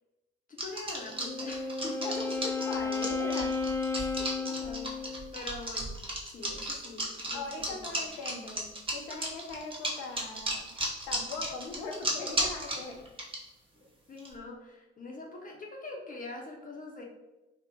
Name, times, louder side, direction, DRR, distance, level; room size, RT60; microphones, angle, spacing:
voice 1, 0.5-2.0 3.9-6.0 6.3-7.4 7.7-8.1 14.1-17.0, left 2 dB, 25° left, 0 dB, 0.7 m, -44 dB
sound 1, 0.6-13.3 14.2-14.4, right 1 dB, 15° right, 0.9 m, -34 dB
Wind instrument woodwind instrument, 1.0-5.4, left 4 dB, 5° left, 0.3 m, -33 dB
voice 2, 2.0-3.6 7.3-10.8 11.1-13.0, left 3 dB, 70° left, 2 dB, 0.6 m, -40 dB
2.8 x 2.1 x 3.4 m, 1.0 s
figure-of-eight pair, 45°, 32 cm